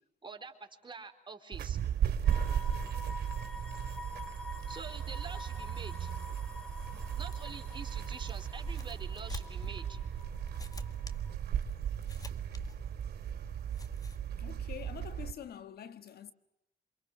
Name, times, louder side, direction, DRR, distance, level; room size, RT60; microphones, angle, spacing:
voice 1, 0.2-1.8 4.7-6.1 7.2-10.0, right 4 dB, 30° right, 4.0 m, -46 dB
sound 1, 1.5-15.3, right 9 dB, 75° right, 2.9 m, -36 dB
sound 2, 2.2-11.3, left 2 dB, 5° left, 2.6 m, -48 dB
sound 3, 6.6-14.2, left 3 dB, 20° left, 1.7 m, -49 dB
voice 2, 14.4-16.3, left 9 dB, 70° left, 1.6 m, -46 dB
28.5 x 26.5 x 6.1 m
cardioid pair, 85°, 17 cm